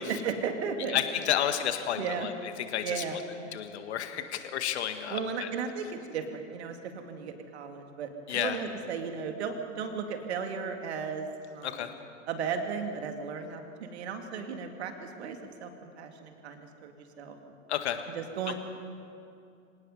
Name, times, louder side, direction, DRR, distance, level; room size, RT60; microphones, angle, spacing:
voice 1, 0.0-1.0 2.0-2.3 2.8-3.6 5.1-11.9 12.3-17.6 18.1-18.5, right 6 dB, 55° right, 5 dB, 2.4 m, -35 dB
voice 2, 0.9-3.0 3.5-5.5 8.3-8.6 11.6-11.9 17.7-18.0, left 10 dB, 55° left, 8 dB, 1.8 m, -31 dB
25.5 x 18.0 x 5.6 m, 2.5 s
figure-of-eight pair, 95°, 39 cm